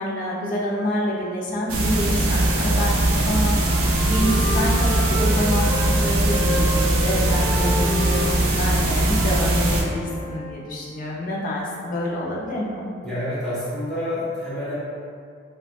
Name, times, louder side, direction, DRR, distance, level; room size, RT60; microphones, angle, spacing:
voice 1, 0.0-3.0 3.3-12.9, equal, 40° left, -5 dB, 0.4 m, -27 dB
sound 1, 1.7-9.8, right 1 dB, 85° right, 0.4 m, -21 dB
Wind instrument woodwind instrument, 2.3-5.9 6.2-10.5, left 2 dB, 30° right, 1.1 m, -32 dB
voice 2, 13.0-14.8, left 1 dB, ahead, -13 dB, 0.8 m, -28 dB
3.2 x 2.1 x 2.6 m, 2.3 s
head